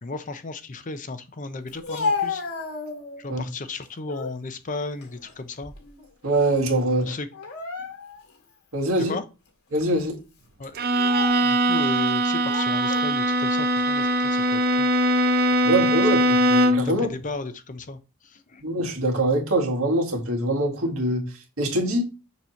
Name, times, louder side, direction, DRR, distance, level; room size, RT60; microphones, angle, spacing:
voice 1, 0.0-2.4 3.2-5.7 7.0-7.3 9.0-9.2 10.6-10.7 11.4-14.9 15.6-16.1 16.8-18.0 18.2-18.6, left 3 dB, 35° left, 0.6 m, -35 dB
Speech, 1.7-3.3 3.8-4.4 4.8-6.1 6.3-6.5 7.3-8.3 8.9-9.0 9.8-10.0 10.8-11.5 12.4-13.1, left 4 dB, 90° left, 2.0 m, -32 dB
voice 2, 6.2-7.1 8.7-9.2 9.7-10.2 15.7-17.1 18.6-21.2 21.6-22.0, right 1 dB, 70° right, 2.0 m, -23 dB
Bowed string instrument, 10.8-17.0, equal, 45° right, 0.6 m, -21 dB
6.8 x 3.0 x 5.7 m
head